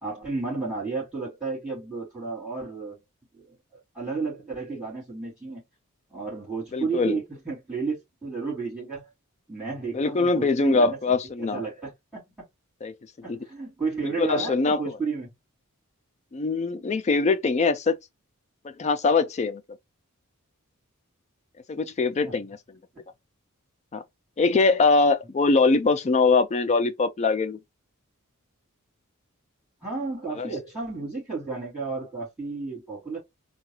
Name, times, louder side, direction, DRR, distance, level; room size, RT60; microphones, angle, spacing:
voice 1, 0.0-3.0 3.3-3.6 3.9-5.6 6.1-9.1 9.5-12.4 13.2-15.3 22.2-22.4 29.8-33.2, right 4 dB, 5° right, 2.7 m, -32 dB
voice 2, 6.7-7.2 9.9-11.6 12.8-12.9 13.3-13.4 14.2-14.8 16.3-18.0 18.6-19.6 21.7-22.6 23.9-24.0 24.4-27.6 30.3-30.5, left 3 dB, 30° left, 0.4 m, -22 dB
3.8 x 2.2 x 3.1 m
head